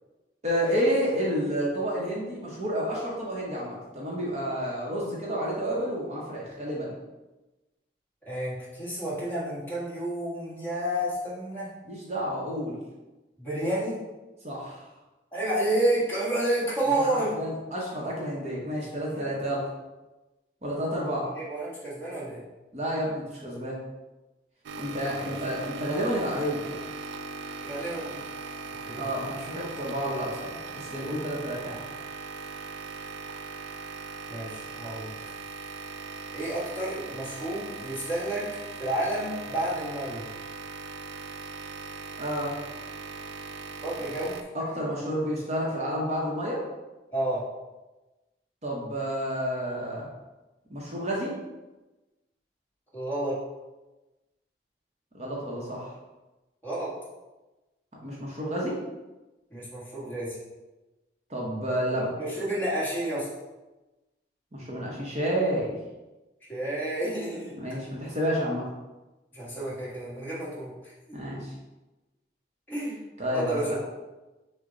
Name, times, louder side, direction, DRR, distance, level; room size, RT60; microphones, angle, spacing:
voice 1, 0.4-6.9 11.9-12.8 14.4-14.8 16.9-19.7 20.6-21.3 22.7-23.8 24.8-26.8 29.0-31.8 42.2-42.5 44.5-46.7 48.6-50.1 50.7-51.3 55.1-55.9 58.0-58.8 61.3-62.1 64.5-65.7 67.6-68.7 71.1-71.5 73.2-73.8, equal, 40° right, -4 dB, 0.8 m, -30 dB
voice 2, 8.3-11.7 13.4-14.0 15.3-17.4 19.1-19.2 21.4-22.4 25.2-25.3 27.6-28.2 28.9-29.1 34.3-35.1 36.3-38.5 38.8-40.2 43.8-44.3 47.1-47.4 52.9-53.4 56.6-56.9 59.5-60.4 61.9-63.3 66.5-67.6 69.3-70.7 71.1-71.2 72.7-72.9 73.3-73.8, right 1 dB, 10° left, -8 dB, 1.3 m, -30 dB
sound 1, 24.6-44.4, right 4 dB, 85° right, 0.3 m, -39 dB
6.4 x 2.2 x 3.8 m, 1.1 s
head